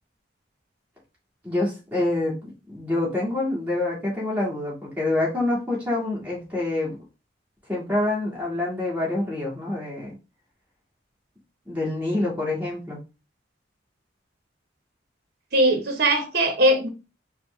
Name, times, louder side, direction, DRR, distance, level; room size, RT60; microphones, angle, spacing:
voice 1, 1.4-7.0 7.7-10.1 11.7-13.0, left 2 dB, 10° right, 1.9 m, -26 dB
voice 2, 15.5-16.9, right 1 dB, 55° right, 0.9 m, -20 dB
4.7 x 2.2 x 3.1 m
head